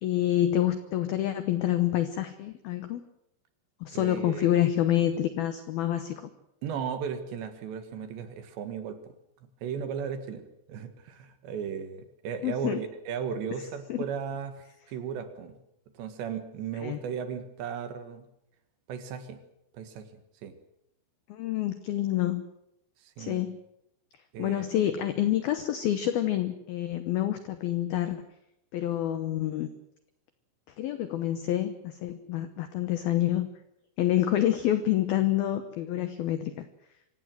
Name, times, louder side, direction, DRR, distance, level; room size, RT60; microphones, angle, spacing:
voice 1, 0.0-3.0 3.8-6.3 12.4-12.8 13.9-14.1 16.8-17.0 21.3-22.4 23.2-23.6 24.4-28.2 28.7-29.7 30.8-33.5 34.0-36.7, left 12 dB, 85° left, 10 dB, 2.1 m, -27 dB
voice 2, 3.9-5.2 6.6-9.2 9.6-15.6 16.0-18.3 18.9-19.4 19.7-20.1 20.4-20.6 23.0-23.4 24.3-24.7, right 7 dB, 65° right, 9 dB, 3.6 m, -36 dB
25.0 x 16.0 x 7.8 m, 0.81 s
omnidirectional pair, 5.9 m